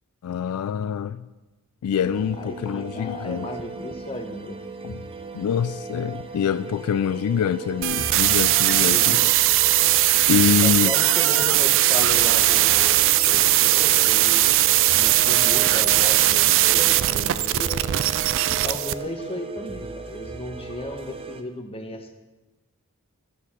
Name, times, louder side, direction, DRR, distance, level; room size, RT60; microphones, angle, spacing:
voice 1, 0.2-1.2 1.8-3.5 4.8-5.0 5.3-9.3 10.3-10.9, left 8 dB, 75° left, 15 dB, 0.3 m, -25 dB
sound 1, 2.0-21.4, right 4 dB, 25° right, 0.7 m, -37 dB
voice 2, 2.4-4.6 8.8-9.3 10.6-17.9 18.6-22.1, left 1 dB, 25° left, 4 dB, 1.1 m, -35 dB
sound 2, 7.8-18.9, right 15 dB, 60° right, 0.4 m, -19 dB
11.5 x 6.9 x 6.1 m, 1.1 s
head